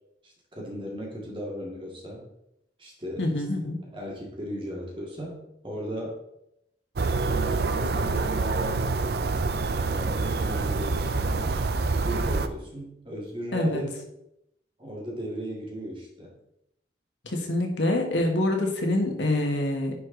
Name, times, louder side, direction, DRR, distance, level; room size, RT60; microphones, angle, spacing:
voice 1, 0.2-2.2 2.8-3.3 3.9-6.1 7.3-8.8 9.8-14.0 14.8-16.3, equal, 30° right, -2 dB, 2.1 m, -36 dB
voice 2, 3.2-3.8 13.5-13.8 17.2-19.9, left 1 dB, 85° left, 2 dB, 1.6 m, -26 dB
sound 1, 7.0-12.5, right 3 dB, 60° right, 0.5 m, -26 dB
10.0 x 5.0 x 3.9 m, 0.82 s
head